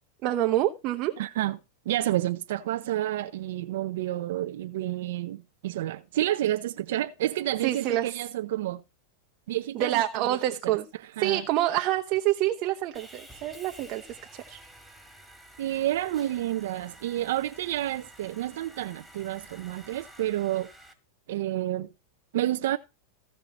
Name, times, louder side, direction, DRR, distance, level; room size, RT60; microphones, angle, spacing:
voice 1, 0.2-1.2 7.6-8.1 9.7-10.8 11.2-14.0 14.3-14.6, right 14 dB, 45° right, 0.9 m, -27 dB
voice 2, 1.2-1.6 1.9-8.8 9.5-10.4 10.6-10.8 11.2-11.5 15.6-20.7 21.3-21.9 22.3-22.8, right 13 dB, 70° right, 0.6 m, -29 dB
Sawing, 12.9-20.9, right 1 dB, ahead, 2.6 m, -51 dB
16.0 x 5.6 x 4.2 m
hypercardioid pair, 125°, 0 cm